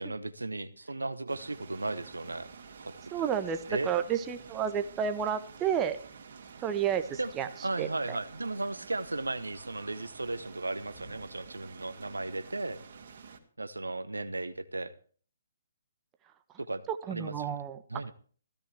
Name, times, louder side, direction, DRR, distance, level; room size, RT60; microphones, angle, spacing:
voice 1, 0.0-2.5 2.9-3.0 3.7-3.9 7.2-7.3 7.6-12.8 13.6-14.9 16.6-16.8 17.1-17.5 17.9-18.1, right 2 dB, 75° right, 13 dB, 1.1 m, -35 dB
sound 1, 1.3-13.4, right 5 dB, 45° right, 2.6 m, -50 dB
voice 2, 3.1-6.0 6.6-7.5 7.8-7.9 16.9-17.8, right 8 dB, 15° right, 8 dB, 1.2 m, -31 dB
16.5 x 15.5 x 3.5 m, 0.44 s
figure-of-eight pair, 130°, 0 cm